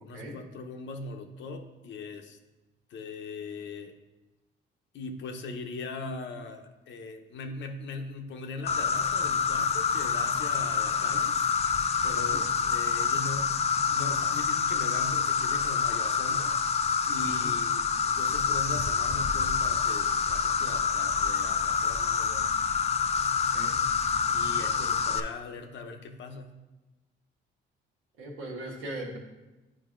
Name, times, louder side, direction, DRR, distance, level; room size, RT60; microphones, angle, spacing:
voice 1, 0.0-2.4 2.9-3.9 4.9-11.4 12.0-13.6 13.9-16.6 17.0-22.5 23.1-23.3 24.3-26.5, left 3 dB, 70° left, 5 dB, 0.8 m, -40 dB
Insect, 8.7-25.2, left 6 dB, 30° left, 0.4 m, -27 dB
voice 2, 28.2-29.2, right 1 dB, 85° right, -3 dB, 1.5 m, -39 dB
10.0 x 4.9 x 2.5 m, 1.1 s
cardioid pair, 90°, 20 cm